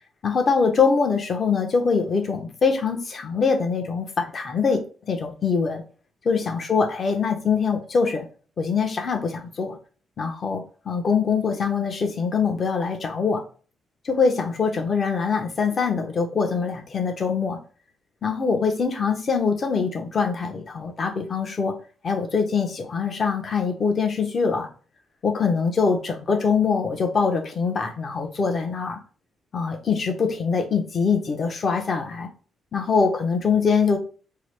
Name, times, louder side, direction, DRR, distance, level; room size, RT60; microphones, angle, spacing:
voice 1, 0.2-4.8 5.1-5.8 6.2-8.2 8.6-9.8 10.2-13.4 14.0-17.6 18.2-21.7 22.0-24.7 25.2-29.0 29.5-32.3 32.7-34.0, left 5 dB, 40° left, 4 dB, 0.7 m, -23 dB
4.6 x 2.0 x 3.2 m, 0.38 s
cardioid pair, 135°, 0 cm